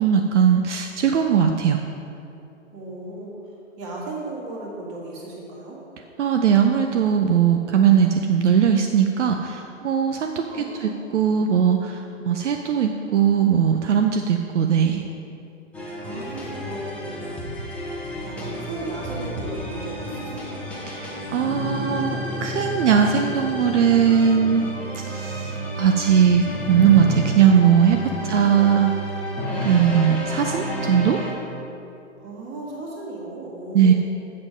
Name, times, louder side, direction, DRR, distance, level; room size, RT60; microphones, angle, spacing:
voice 1, 0.0-1.8 6.2-10.3 10.8-15.0 20.9-24.6 25.1-28.9 29.6-31.2 33.7-33.9, right 8 dB, 65° right, 4 dB, 0.6 m, -19 dB
voice 2, 2.7-3.3 3.8-5.8 10.5-11.0 16.0-17.4 18.2-20.6 28.2-28.9 32.2-33.9, right 2 dB, 25° right, -3 dB, 1.8 m, -36 dB
sound 1, 15.7-31.3, equal, 5° left, 0.8 m, -30 dB
7.6 x 6.0 x 5.1 m, 2.7 s
hypercardioid pair, 135°, 38 cm